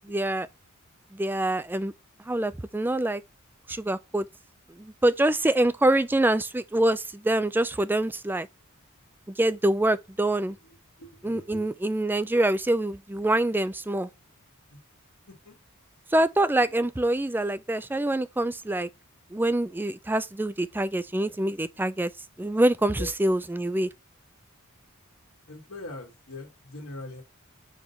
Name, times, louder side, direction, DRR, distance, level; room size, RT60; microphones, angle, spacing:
voice 1, 0.0-0.5 1.1-1.9 2.3-3.2 3.7-4.3 4.8-8.5 9.3-10.6 11.2-14.1 16.1-18.9 19.3-22.1 22.4-23.9, right 1 dB, 10° right, 0.4 m, -25 dB
voice 2, 11.0-11.7 14.7-14.8 15.5-15.6 23.0-23.1 25.5-27.2, left 2 dB, 60° left, 1.9 m, -41 dB
4.9 x 3.9 x 5.5 m
head